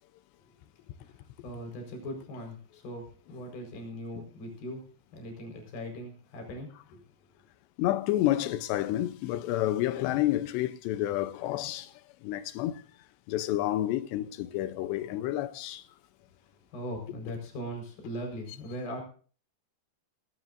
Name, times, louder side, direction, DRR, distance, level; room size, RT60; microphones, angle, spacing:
voice 1, 1.0-4.8 5.1-7.0 16.7-19.0, equal, 55° left, 6.3 m, -40 dB
voice 2, 7.8-11.9 12.2-12.8 13.3-15.8, left 14 dB, 80° left, 2.8 m, -29 dB
18.5 x 18.0 x 2.6 m
omnidirectional pair, 5.2 m